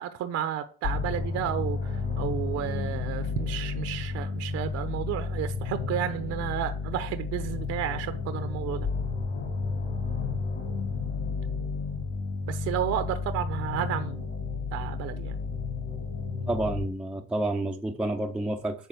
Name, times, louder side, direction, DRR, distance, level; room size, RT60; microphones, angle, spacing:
voice 1, 0.0-8.9 12.5-14.3 14.7-15.4, right 11 dB, 55° right, 0.9 m, -32 dB
sound 1, 0.8-16.8, left 4 dB, 55° left, 3.2 m, -32 dB
voice 2, 16.5-18.9, right 1 dB, 5° right, 0.6 m, -29 dB
9.2 x 6.0 x 7.6 m
cardioid pair, 145°, 30 cm